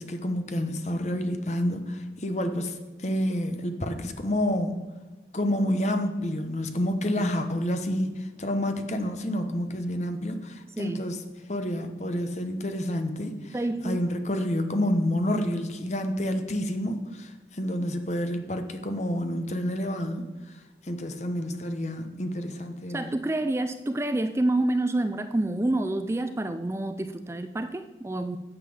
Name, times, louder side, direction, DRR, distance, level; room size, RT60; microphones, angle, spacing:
voice 1, 0.0-4.8 5.3-11.2 11.5-13.5 13.8-20.3 20.8-23.0, left 1 dB, 40° left, 7 dB, 1.0 m, -29 dB
voice 2, 10.7-11.0 13.5-14.0 22.9-28.4, right 2 dB, 15° right, 9 dB, 0.3 m, -28 dB
9.7 x 7.4 x 7.1 m, 1.2 s
head